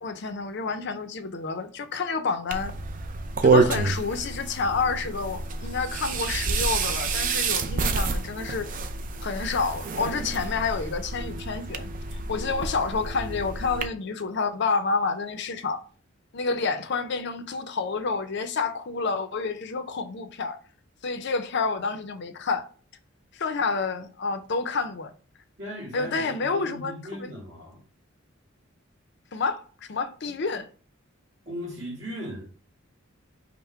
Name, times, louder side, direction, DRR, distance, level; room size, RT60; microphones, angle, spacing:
voice 1, 0.0-2.7 3.4-8.7 9.2-15.8 16.3-20.6 21.0-22.6 23.3-25.1 25.9-27.3 29.3-29.6 29.9-30.7, left 4 dB, 55° left, 0.5 m, -29 dB
sound 1, 2.5-13.9, right 4 dB, 40° right, 0.4 m, -28 dB
voice 2, 25.6-27.8 30.2-30.3 31.5-32.5, equal, 60° right, 2.3 m, -37 dB
5.6 x 2.1 x 4.4 m
head